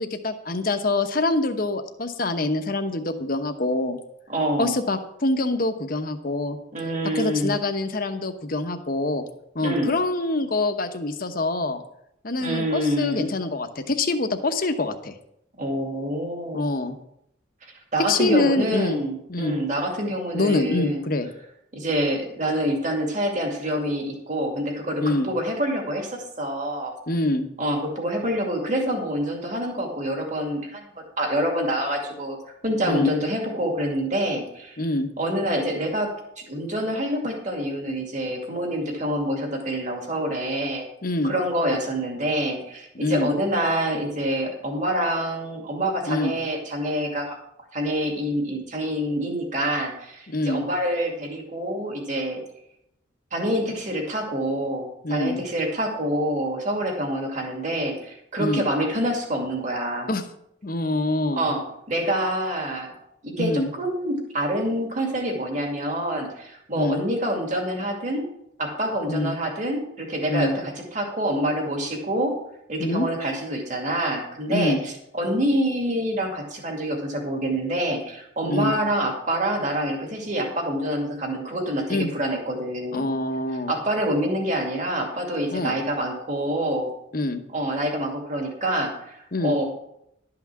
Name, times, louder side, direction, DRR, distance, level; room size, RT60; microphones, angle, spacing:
voice 1, 0.0-4.0 4.6-6.6 7.1-9.2 9.5-11.8 12.2-15.1 16.5-16.9 18.1-19.0 19.3-19.6 20.3-21.3 25.0-25.3 27.1-27.4 32.8-33.1 34.8-35.1 41.0-41.3 43.0-43.3 46.0-46.3 50.3-50.7 55.0-55.4 58.4-58.7 60.1-60.2 60.6-61.5 63.4-63.7 66.8-67.0 69.1-69.3 70.3-70.6 72.8-73.1 74.5-74.8 78.5-78.7 81.9-82.1 82.9-83.7 85.5-85.8 87.1-87.4 89.3-89.6, left 2 dB, 45° left, 7 dB, 1.0 m, -25 dB
voice 2, 4.3-4.8 6.7-7.6 9.6-9.9 12.4-13.3 15.6-16.7 17.6-21.0 21.7-27.0 27.6-32.4 32.6-34.8 35.2-36.1 36.5-40.9 41.2-47.4 47.7-52.4 53.3-60.1 61.4-61.6 61.9-62.9 63.2-68.2 68.6-72.3 72.7-83.1 83.7-86.9 87.5-89.6, right 1 dB, 40° right, 1 dB, 2.5 m, -26 dB
12.0 x 5.9 x 7.4 m, 0.77 s
head